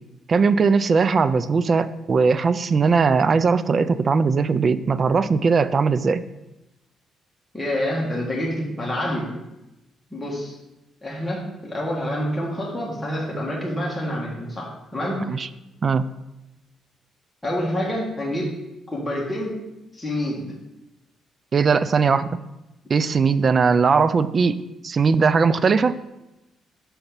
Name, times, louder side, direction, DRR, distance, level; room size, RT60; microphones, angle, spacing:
voice 1, 0.3-6.2 15.3-15.5 15.8-16.1 21.5-22.3 22.9-26.0, right 5 dB, 40° right, 15 dB, 0.3 m, -19 dB
voice 2, 7.5-9.3 10.1-10.5 11.0-15.2 17.4-18.6 18.9-19.6 19.9-20.5, equal, 10° left, -5 dB, 1.5 m, -27 dB
5.8 x 4.0 x 5.2 m, 0.96 s
cardioid pair, 90°, 0 cm